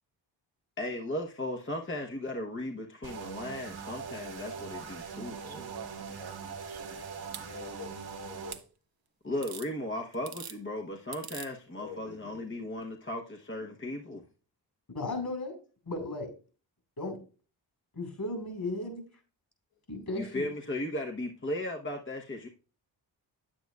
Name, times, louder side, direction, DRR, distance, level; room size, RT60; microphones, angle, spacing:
voice 1, 0.8-5.7 9.2-14.2 20.1-22.5, left 1 dB, 25° left, 1.1 m, -36 dB
sound 1, 3.0-8.6, right 5 dB, 65° right, 1.5 m, -42 dB
sound 2, 5.4-7.5 8.5-8.6 9.4-9.7 10.1-10.6 11.1-11.5 12.8-12.9, right 8 dB, 45° right, 0.9 m, -45 dB
voice 2, 7.4-8.6 11.7-12.5 19.7-19.8, left 6 dB, 70° left, 4.1 m, -47 dB
voice 3, 14.9-15.6 15.8-16.3 17.0-17.2 17.9-19.0 19.9-20.5, left 2 dB, 45° left, 4.3 m, -35 dB
9.1 x 8.8 x 2.4 m
supercardioid pair, 45°, 48 cm